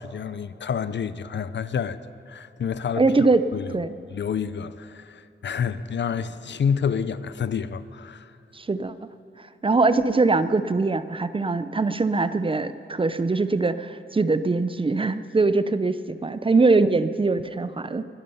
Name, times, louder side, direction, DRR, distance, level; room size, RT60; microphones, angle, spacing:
voice 1, 0.0-2.0 2.3-3.0 3.5-3.7 4.1-8.3, left 7 dB, 65° left, 0.5 m, -28 dB
voice 2, 3.0-3.5 3.7-4.0 8.5-8.9 9.6-18.0, right 3 dB, 25° right, 0.5 m, -22 dB
22.0 x 10.5 x 5.6 m
wide cardioid pair, 115°, 20 cm